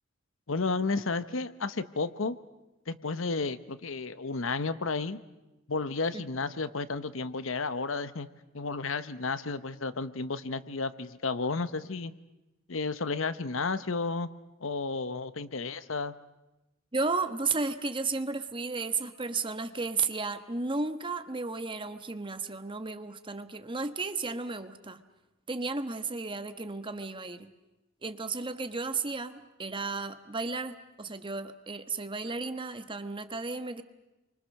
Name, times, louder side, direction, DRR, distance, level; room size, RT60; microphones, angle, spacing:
voice 1, 0.5-2.4 2.9-5.2 5.7-8.3 8.5-12.1 12.7-14.3 14.6-16.1, left 4 dB, 70° left, 13 dB, 1.0 m, -32 dB
voice 2, 16.9-25.0 25.5-27.5 28.0-33.8, right 4 dB, 25° right, 9 dB, 1.3 m, -33 dB
29.5 x 24.5 x 6.5 m, 1.0 s
head